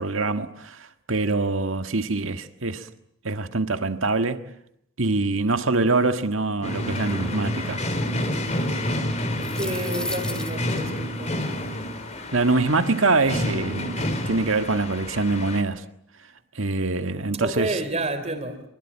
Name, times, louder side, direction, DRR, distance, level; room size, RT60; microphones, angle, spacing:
voice 1, 0.0-2.9 3.2-4.4 5.0-7.8 12.3-15.8 16.6-17.8, right 3 dB, 85° right, 1.7 m, -24 dB
sound 1, 6.6-15.6, left 1 dB, 35° left, 4.0 m, -29 dB
sound 2, 9.2-10.8, left 1 dB, 5° left, 2.7 m, -34 dB
voice 2, 9.6-11.4 17.4-18.6, right 2 dB, 35° right, 3.8 m, -29 dB
25.5 x 24.0 x 8.7 m
head